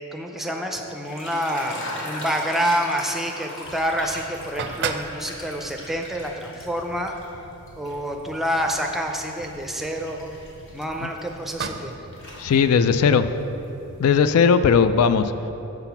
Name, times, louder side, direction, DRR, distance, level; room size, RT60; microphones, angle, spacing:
voice 1, 0.1-7.1 7.8-10.3 10.7-12.1, equal, ahead, 2 dB, 0.5 m, -27 dB
sound 1, 0.9-7.3 7.7-11.8 12.1-12.9, left 1 dB, 55° left, 1.3 m, -40 dB
sound 2, 3.6-14.4, right 5 dB, 50° right, 0.4 m, -39 dB
voice 2, 12.4-13.3 14.0-15.5, left 6 dB, 75° left, 11 dB, 0.3 m, -18 dB
7.9 x 5.9 x 5.8 m, 3.0 s
head